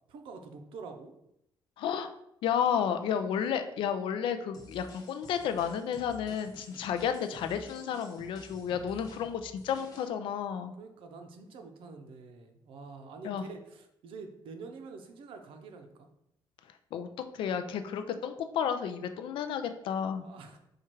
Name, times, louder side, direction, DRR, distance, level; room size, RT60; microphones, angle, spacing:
voice 1, 0.1-1.1 10.8-16.1 20.2-20.6, right 4 dB, 80° right, 5 dB, 0.6 m, -46 dB
voice 2, 1.8-2.1 2.4-10.7 13.2-13.4 16.9-17.1 17.3-20.2, left 8 dB, 70° left, 8 dB, 0.4 m, -32 dB
sound 1, 4.5-10.1, left 2 dB, 45° left, 0.9 m, -52 dB
4.4 x 2.4 x 4.5 m, 0.79 s
cardioid pair, 170°, 9 cm